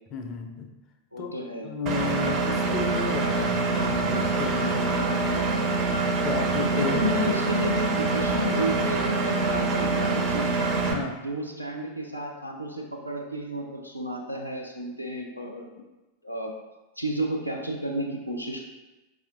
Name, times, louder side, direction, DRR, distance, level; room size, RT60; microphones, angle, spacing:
voice 1, 0.1-0.7 1.2-1.4 1.6-5.7 6.2-7.1 10.9-11.2, left 4 dB, 35° left, 4 dB, 0.4 m, -33 dB
voice 2, 1.1-1.7 6.6-10.6 11.2-15.7 16.2-16.5 17.0-18.6, equal, 90° right, 0 dB, 0.5 m, -32 dB
Engine, 1.9-10.9, right 3 dB, 35° right, 0.4 m, -25 dB
4.3 x 2.4 x 2.4 m, 1.1 s
figure-of-eight pair, 90°, 0 cm